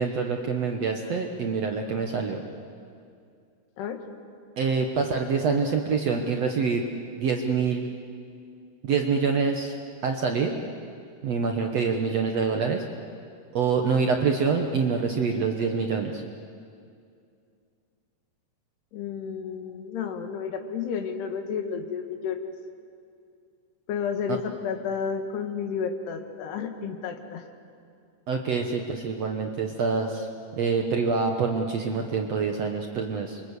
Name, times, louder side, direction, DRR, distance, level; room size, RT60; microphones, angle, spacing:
voice 1, 0.0-2.4 4.6-6.8 7.2-7.9 8.8-9.8 10.0-10.5 11.2-12.8 13.5-16.2 24.3-24.4 28.3-30.3 30.6-33.4, right 5 dB, 60° right, 3 dB, 1.7 m, -26 dB
voice 2, 18.9-22.5 23.9-27.5, left 6 dB, 85° left, 6 dB, 3.8 m, -31 dB
28.0 x 25.0 x 8.2 m, 2.4 s
omnidirectional pair, 4.6 m